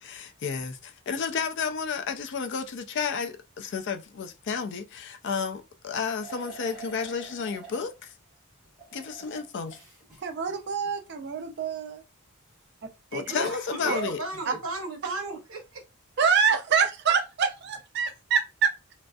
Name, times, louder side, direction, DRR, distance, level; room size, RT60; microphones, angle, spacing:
voice 1, 0.0-8.1 8.9-9.8 13.1-14.2, left 5 dB, 55° left, 0.4 m, -32 dB
sound 1, 6.2-7.9 8.6-11.3 13.3-14.6, right 2 dB, ahead, 1.4 m, -43 dB
voice 2, 10.2-12.0 13.1-13.3 13.8-14.0 16.2-18.9, right 6 dB, 50° right, 0.4 m, -26 dB
voice 3, 13.8-15.8, right 2 dB, 70° right, 1.0 m, -34 dB
2.9 x 2.6 x 2.3 m
head